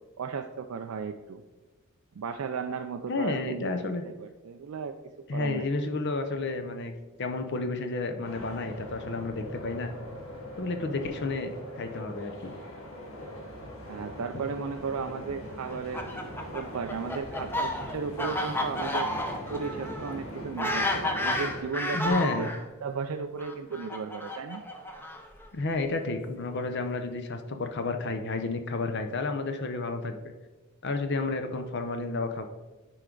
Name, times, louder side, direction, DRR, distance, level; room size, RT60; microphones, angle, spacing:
voice 1, 0.2-1.4 2.2-3.7 4.0-5.0 5.3-5.7 13.9-16.1 16.5-19.1 19.5-22.5 22.8-24.6, right 5 dB, 75° right, 6 dB, 0.4 m, -35 dB
voice 2, 3.1-4.0 5.3-6.9 7.2-9.9 10.6-11.5 11.8-12.5 21.9-22.5 25.5-30.2 30.8-32.5, left 3 dB, 50° left, 7 dB, 0.6 m, -31 dB
sound 1, 8.2-21.6, equal, 65° left, 1.4 m, -41 dB
Fowl, 15.7-22.6 23.4-25.4, left 1 dB, 10° left, 0.6 m, -32 dB
9.8 x 4.6 x 3.8 m, 1.2 s
head